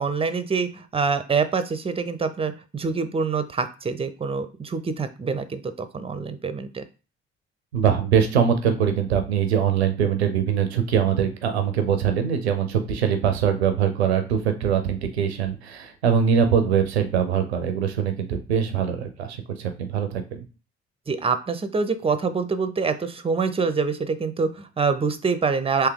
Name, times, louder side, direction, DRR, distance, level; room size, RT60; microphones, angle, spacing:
voice 1, 0.0-6.8 21.1-25.9, right 5 dB, 20° right, 12 dB, 0.5 m, -25 dB
voice 2, 7.7-20.4, right 8 dB, 85° right, 7 dB, 0.5 m, -22 dB
3.4 x 2.7 x 3.7 m, 0.34 s
figure-of-eight pair, 45°, 32 cm